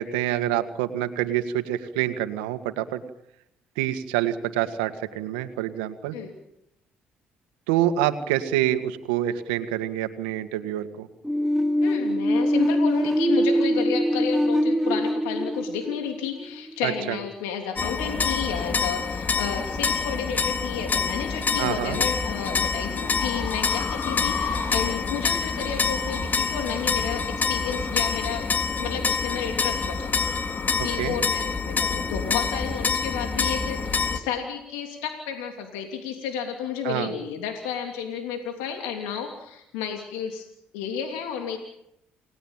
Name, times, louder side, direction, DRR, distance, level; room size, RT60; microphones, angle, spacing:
voice 1, 0.0-3.0 3.8-6.2 7.7-11.1 16.8-17.2 21.6-22.0 30.8-31.1 36.8-37.1, right 12 dB, 90° right, 9 dB, 1.9 m, -26 dB
sound 1, 11.2-16.9, equal, 5° right, 1.6 m, -23 dB
voice 2, 11.8-28.5 28.8-30.4 30.8-40.5 40.7-41.6, left 7 dB, 85° left, 4 dB, 3.0 m, -32 dB
sound 2, 17.8-34.2, left 5 dB, 40° left, 2.6 m, -27 dB
sound 3, 21.8-31.0, left 6 dB, 60° left, 8.0 m, -39 dB
29.5 x 19.0 x 9.1 m, 0.83 s
hypercardioid pair, 55°, 5 cm